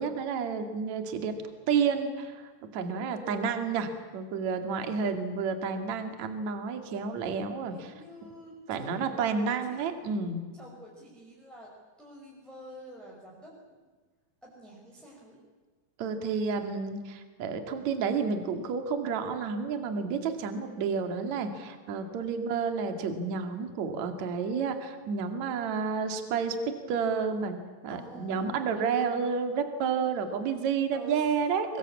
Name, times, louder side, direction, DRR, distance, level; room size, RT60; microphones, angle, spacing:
voice 1, 0.0-1.3 1.7-3.9 4.1-7.9 8.7-10.4 16.0-26.6 26.9-27.6 27.8-31.8, right 5 dB, 45° right, 7 dB, 2.9 m, -30 dB
voice 2, 3.1-3.6 7.7-9.4 9.6-9.9 10.5-11.7 12.0-13.9 14.4-15.4 20.5-20.9 27.9-29.1 30.9-31.2, equal, ahead, -3 dB, 4.9 m, -48 dB
23.5 x 23.5 x 8.5 m, 1.4 s
omnidirectional pair, 5.4 m